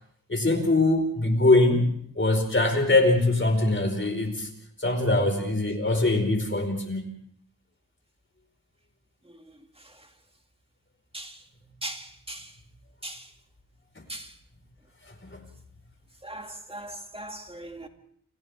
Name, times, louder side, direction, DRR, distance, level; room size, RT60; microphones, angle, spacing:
voice 1, 0.3-4.5 4.8-7.0 15.3-15.4, left 2 dB, 35° left, 5 dB, 4.9 m, -22 dB
voice 2, 16.7-17.9, right 1 dB, 15° right, 4 dB, 2.4 m, -37 dB
30.0 x 28.0 x 3.6 m, 0.62 s
wide cardioid pair, 90°, 34 cm